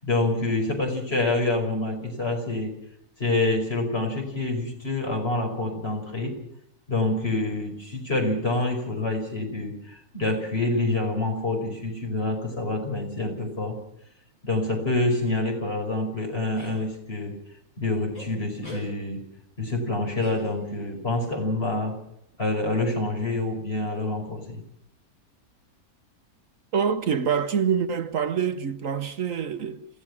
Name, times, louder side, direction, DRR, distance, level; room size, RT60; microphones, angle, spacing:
voice 1, 0.0-2.7 3.2-6.3 6.9-13.8 14.4-17.4 17.8-19.3 19.6-22.0 22.4-24.6, left 2 dB, 40° left, 5.7 m, -27 dB
sound 1, 16.6-16.8 18.1-18.3 18.6-18.9 20.2-20.9, left 1 dB, 65° left, 7.6 m, -41 dB
voice 2, 26.7-29.9, right 7 dB, 65° right, 1.3 m, -26 dB
28.0 x 16.5 x 6.1 m
omnidirectional pair, 1.5 m